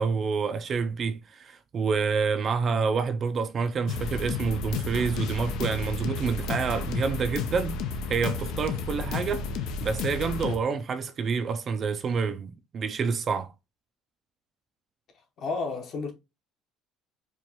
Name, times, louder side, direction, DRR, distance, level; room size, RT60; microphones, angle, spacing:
voice 1, 0.0-7.8 8.1-9.5 9.8-13.5, right 5 dB, 35° right, 0.4 m, -28 dB
sound 1, 3.9-10.6, left 5 dB, 70° left, 0.6 m, -32 dB
voice 2, 15.4-16.1, left 4 dB, 45° left, 1.0 m, -31 dB
4.6 x 2.4 x 3.0 m
cardioid pair, 145°, 0 cm